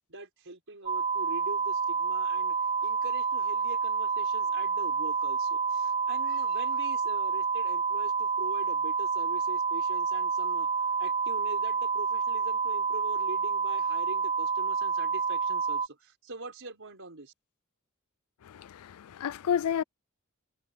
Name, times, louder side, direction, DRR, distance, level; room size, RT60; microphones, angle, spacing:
voice 1, 0.1-17.3, right 2 dB, 60° right, 5.0 m, -43 dB
sound 1, 0.9-15.9, right 5 dB, 25° right, 0.5 m, -29 dB
voice 2, 18.4-19.8, left 8 dB, 80° left, 0.4 m, -31 dB
head